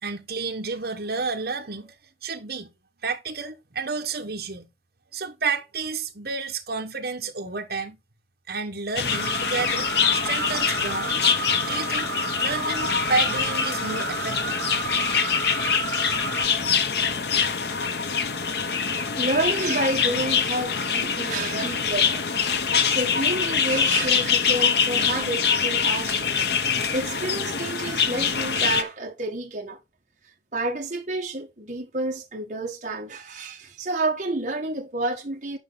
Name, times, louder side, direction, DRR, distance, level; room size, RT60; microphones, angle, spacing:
voice 1, 0.0-2.7 3.0-4.7 5.1-8.0 8.5-12.1 12.4-14.6, right 4 dB, 60° right, 1.4 m, -31 dB
sound 1, 9.0-28.8, left 6 dB, 60° left, 0.9 m, -24 dB
sound 2, 9.1-16.5, right 5 dB, 80° right, 2.0 m, -32 dB
voice 2, 19.2-22.2 22.9-26.3 26.9-29.8 30.5-35.6, right 2 dB, 40° right, 1.7 m, -29 dB
9.3 x 5.4 x 4.0 m
head